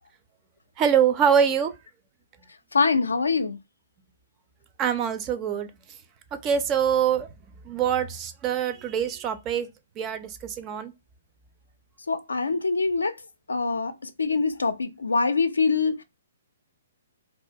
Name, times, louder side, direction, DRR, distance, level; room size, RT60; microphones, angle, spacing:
voice 1, 0.8-1.7 4.8-5.7 6.3-7.3 7.6-9.7 10.0-10.9, right 8 dB, 25° right, 0.4 m, -24 dB
voice 2, 2.7-3.6 12.1-13.1 13.5-16.0, left 4 dB, 80° left, 0.3 m, -24 dB
2.2 x 2.1 x 2.6 m
figure-of-eight pair, 125°, 0 cm